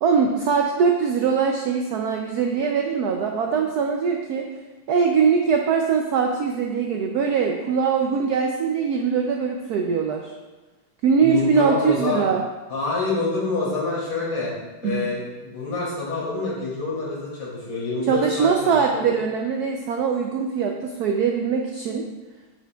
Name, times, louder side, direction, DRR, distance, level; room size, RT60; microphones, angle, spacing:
voice 1, 0.0-4.5 4.9-10.3 11.0-12.4 14.8-15.1 18.1-22.0, right 6 dB, 80° right, 2 dB, 0.9 m, -22 dB
voice 2, 11.2-12.2 12.7-14.5 14.8-19.1, left 3 dB, 65° left, -6 dB, 3.1 m, -27 dB
8.5 x 7.1 x 2.3 m, 1.2 s
omnidirectional pair, 2.2 m